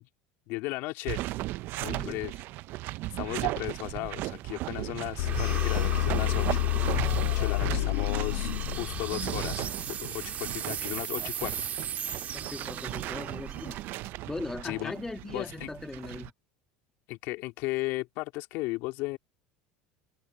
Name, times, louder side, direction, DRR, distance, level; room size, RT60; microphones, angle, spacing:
voice 1, 0.5-1.2 1.8-2.3 3.1-6.6 6.9-7.0 7.2-9.7 10.0-11.7 14.6-14.9 15.3-15.7 17.1-19.2, left 22 dB, 65° left, 3.5 m, -35 dB
sound 1, 1.1-16.3, right 18 dB, 60° right, 0.6 m, -37 dB
voice 2, 1.8-2.2 12.3-13.8 14.3-16.3, left 2 dB, 10° left, 2.3 m, -39 dB
sound 2, 3.7-14.9, right 9 dB, 40° right, 2.1 m, -39 dB
sound 3, 5.2-10.1, left 20 dB, 85° left, 1.6 m, -29 dB
supercardioid pair, 100°, 4 cm